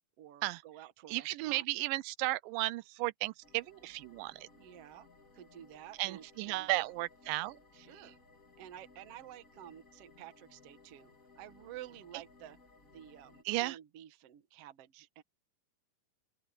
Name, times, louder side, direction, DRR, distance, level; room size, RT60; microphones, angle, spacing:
voice 1, 0.2-1.7 4.6-5.1 5.3-6.9 7.7-8.2 8.6-12.6 12.8-15.2, right 12 dB, 60° right, 1.7 m, -51 dB
voice 2, 1.1-4.5 6.0-7.6 13.5-13.8, right 19 dB, 80° right, 2.1 m, -34 dB
sound 1, 3.4-13.4, left 3 dB, 25° left, 2.9 m, -61 dB
open air
omnidirectional pair, 4.3 m